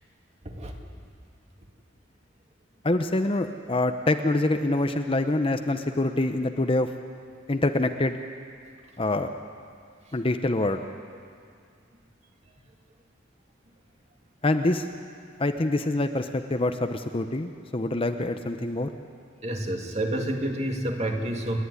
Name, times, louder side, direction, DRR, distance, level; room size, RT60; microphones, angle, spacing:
voice 1, 0.4-0.8 19.4-21.6, right 1 dB, 35° right, 2 dB, 2.2 m, -29 dB
voice 2, 2.8-6.9 7.5-8.2 9.0-9.3 10.1-10.8 14.4-14.8 15.4-18.9, left 2 dB, 30° left, 7 dB, 0.7 m, -25 dB
29.0 x 10.5 x 9.7 m, 2.2 s
head